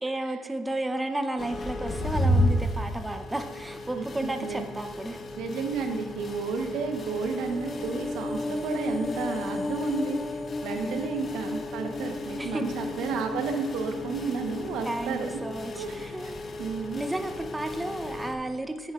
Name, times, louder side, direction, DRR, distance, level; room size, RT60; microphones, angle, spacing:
voice 1, 0.0-5.2 10.7-11.1 12.4-12.7 14.8-16.3 16.9-18.9, right 1 dB, 15° right, 7 dB, 0.7 m, -33 dB
sound 1, 1.4-18.4, left 1 dB, 45° left, 1.1 m, -34 dB
voice 2, 3.9-4.6 5.4-10.2 10.6-15.3 15.7-16.3 16.6-17.0, right 5 dB, 80° right, 5 dB, 1.1 m, -32 dB
sound 2, 7.2-15.7 16.0-16.1, left 2 dB, 25° left, 0.3 m, -35 dB
10.0 x 9.8 x 2.5 m, 1.3 s
supercardioid pair, 75°, 0 cm